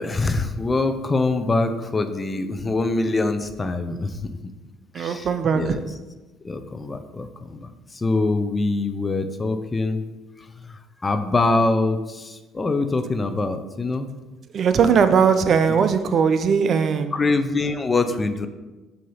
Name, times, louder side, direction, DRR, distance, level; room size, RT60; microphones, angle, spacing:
voice 1, 0.0-4.4 5.0-5.8 6.4-10.0 10.4-14.1 15.7-15.8 17.1-18.5, left 3 dB, 25° left, 8 dB, 0.6 m, -24 dB
voice 2, 4.9-5.7 14.5-17.1, right 6 dB, 55° right, 10 dB, 0.4 m, -19 dB
6.3 x 2.8 x 5.5 m, 1.2 s
supercardioid pair, 75°, 0 cm